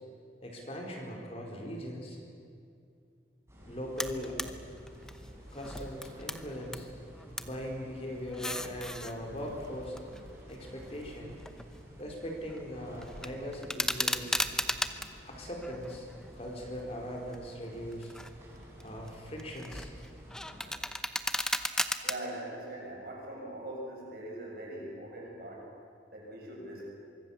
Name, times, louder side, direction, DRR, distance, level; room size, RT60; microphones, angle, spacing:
voice 1, 0.4-2.2 3.7-4.4 5.5-6.9 7.4-10.0 10.5-11.3 12.0-14.4 15.2-16.1 16.3-18.1 18.8-19.9, equal, 35° left, 0 dB, 4.3 m, -40 dB
sound 1, 3.5-20.8, equal, 15° right, 7.0 m, -51 dB
sound 2, 4.0-4.5 4.9-6.9 7.1-7.6 8.2-9.1 9.8-11.9 12.2-12.6 13.0-15.1 15.6-16.6 17.1-17.4 17.9-18.4 18.8-22.2, left 1 dB, 5° left, 0.8 m, -36 dB
voice 2, 22.0-25.7 26.1-26.9, right 1 dB, 55° right, -2 dB, 7.3 m, -41 dB
25.0 x 24.0 x 7.1 m, 2.5 s
head